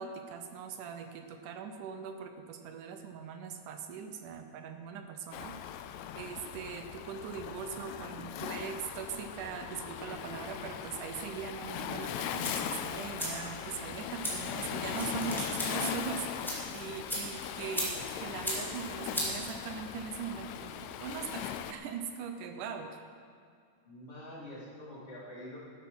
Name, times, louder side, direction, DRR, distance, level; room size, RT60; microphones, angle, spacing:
voice 1, 0.0-5.6 6.1-20.7 21.0-23.0, right 7 dB, 75° right, 6 dB, 2.2 m, -41 dB
Waves surf, 5.3-21.7, left 9 dB, 90° left, 1.6 m, -39 dB
sound 1, 12.0-20.0, equal, ahead, 2.3 m, -39 dB
voice 2, 23.8-25.6, left 1 dB, 40° left, -8 dB, 4.6 m, -46 dB
12.0 x 9.3 x 6.1 m, 2.3 s
omnidirectional pair, 4.0 m